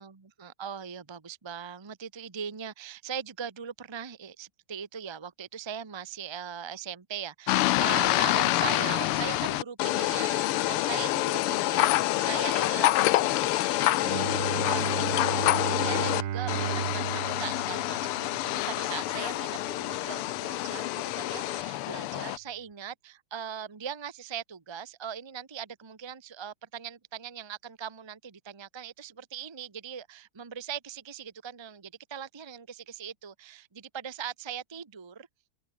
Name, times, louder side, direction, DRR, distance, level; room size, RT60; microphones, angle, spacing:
voice 1, 0.0-35.3, right 8 dB, 25° right, 0.6 m, -40 dB
sound 1, 7.5-16.2 16.5-22.4, left 16 dB, 85° left, 1.6 m, -27 dB
Bowed string instrument, 14.0-19.7, right 10 dB, 60° right, 1.7 m, -35 dB
omnidirectional pair, 2.4 m